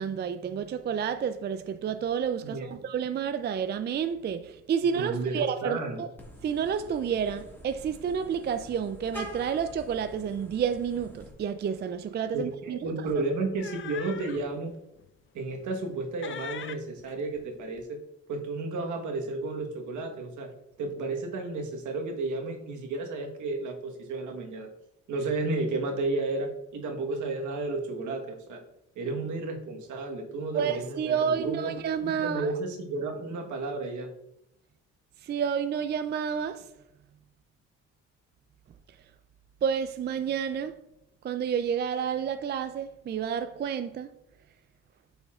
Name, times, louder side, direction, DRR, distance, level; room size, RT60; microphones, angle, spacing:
voice 1, 0.0-6.1 6.4-13.1 30.5-32.5 35.2-36.7 38.9-39.0 39.6-40.8 41.2-44.1, right 7 dB, 35° right, 0.4 m, -30 dB
voice 2, 4.9-6.0 12.3-14.8 15.3-18.0 18.3-20.5 20.8-24.7 25.1-28.6 28.9-31.7 32.0-34.1, right 3 dB, 75° right, 1.3 m, -32 dB
Vehicle horn car horn honking, 6.2-11.3, equal, 5° left, 1.8 m, -46 dB
sound 1, 11.3-11.5 11.8-12.0 13.1-14.5 15.0-15.1 15.6-16.0 16.2-17.8, left 8 dB, 40° left, 0.5 m, -42 dB
8.7 x 5.5 x 2.4 m
cardioid pair, 90°, 30 cm